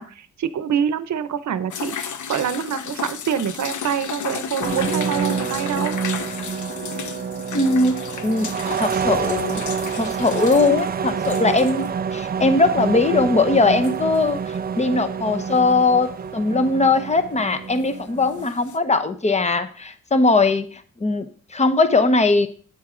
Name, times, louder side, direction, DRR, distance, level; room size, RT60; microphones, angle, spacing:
voice 1, 0.0-6.0, right 8 dB, 70° right, 14 dB, 0.7 m, -26 dB
sound 1, 1.7-12.0 12.3-12.4 13.5-14.4 17.8-18.0 18.3-18.8, left 7 dB, 80° left, 0.8 m, -33 dB
sound 2, 4.6-18.5, right 6 dB, 30° right, 0.4 m, -27 dB
voice 2, 7.5-8.5 8.8-9.6 10.0-14.4 14.8-22.5, left 3 dB, 25° left, 11 dB, 0.8 m, -20 dB
8.9 x 8.0 x 3.8 m, 0.43 s
wide cardioid pair, 120°, 30 cm